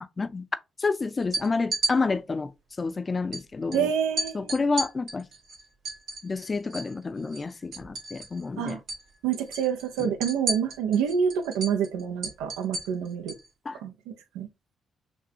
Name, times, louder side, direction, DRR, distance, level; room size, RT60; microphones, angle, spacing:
voice 1, 0.8-2.5 2.8-3.9 4.3-5.3 6.2-8.8 10.0-10.1 13.7-13.8, left 4 dB, 35° left, 0.5 m, -29 dB
sound 1, 1.2-1.9 3.3-3.4 3.7-3.8 4.2-6.9 7.2-8.4 8.7-9.0 9.3-13.5, right 2 dB, 70° right, 1.5 m, -33 dB
voice 2, 3.7-4.5 8.6-8.8 9.2-13.3 13.8-14.5, right 7 dB, 90° right, 0.6 m, -27 dB
6.1 x 2.3 x 2.7 m
supercardioid pair, 55°, 0 cm